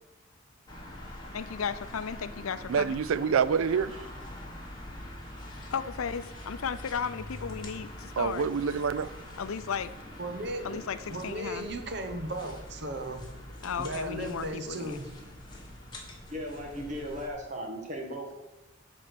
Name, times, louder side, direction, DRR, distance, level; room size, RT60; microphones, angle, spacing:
sound 1, 0.7-17.3, left 1 dB, 20° left, 1.7 m, -44 dB
voice 1, 1.3-3.0 5.7-8.5 9.4-9.9 10.6-11.7 13.6-15.0, left 6 dB, 85° left, 0.5 m, -35 dB
voice 2, 2.7-4.0 8.2-9.1, right 6 dB, 75° right, 0.4 m, -26 dB
voice 3, 10.2-10.8 11.1-13.4 13.8-15.1, right 1 dB, 50° right, 1.0 m, -36 dB
voice 4, 16.3-18.3, equal, 35° right, 1.5 m, -37 dB
10.0 x 4.4 x 6.7 m
head